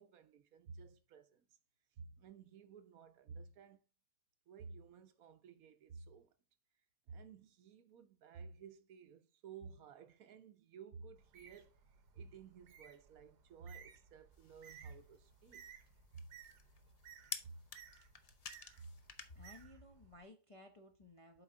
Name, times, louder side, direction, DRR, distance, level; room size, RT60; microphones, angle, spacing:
voice 1, 0.0-1.4 2.0-3.8 4.5-6.3 7.1-11.8 12.1-15.7 16.1-16.3 17.4-17.6 18.8-18.9, right 5 dB, 70° right, 1.1 m, -54 dB
Bird, 11.2-20.2, right 8 dB, 85° right, 1.5 m, -60 dB
sound 1, 14.3-19.7, left 5 dB, 80° left, 0.3 m, -52 dB
voice 2, 19.3-21.4, left 1 dB, 30° left, 0.6 m, -57 dB
7.9 x 4.8 x 3.7 m
omnidirectional pair, 1.7 m